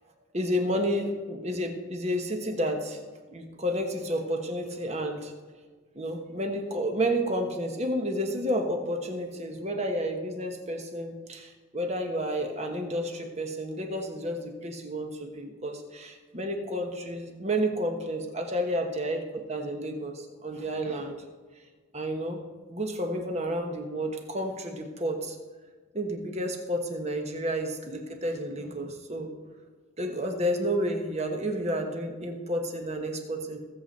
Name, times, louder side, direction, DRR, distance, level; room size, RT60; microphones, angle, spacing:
voice 1, 0.3-3.0 3.3-5.3 5.9-21.1 21.9-22.4 22.7-25.4 25.9-29.3 30.0-33.6, equal, 30° right, 4 dB, 1.3 m, -31 dB
19.5 x 7.7 x 4.2 m, 1.4 s
head